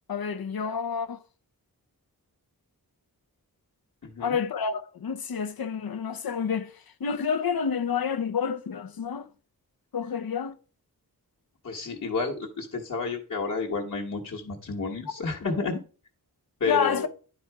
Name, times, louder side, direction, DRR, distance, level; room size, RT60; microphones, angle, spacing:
voice 1, 0.1-1.2 4.2-6.7 7.0-9.3 9.9-10.6 16.7-17.1, left 6 dB, 70° left, 0.8 m, -29 dB
voice 2, 4.0-4.4 11.6-15.8 16.6-17.1, left 4 dB, 45° left, 1.3 m, -30 dB
10.5 x 4.3 x 4.6 m
wide cardioid pair, 95°, 38 cm